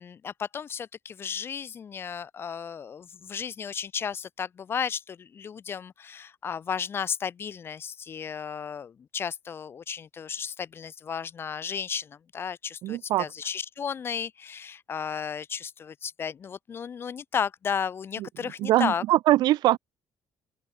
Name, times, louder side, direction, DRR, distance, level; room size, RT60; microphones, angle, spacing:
voice 1, 0.0-19.0, left 7 dB, 30° left, 1.0 m, -34 dB
voice 2, 12.8-13.3 18.2-19.8, right 15 dB, 75° right, 2.6 m, -23 dB
open air
cardioid pair, 160°, 7 cm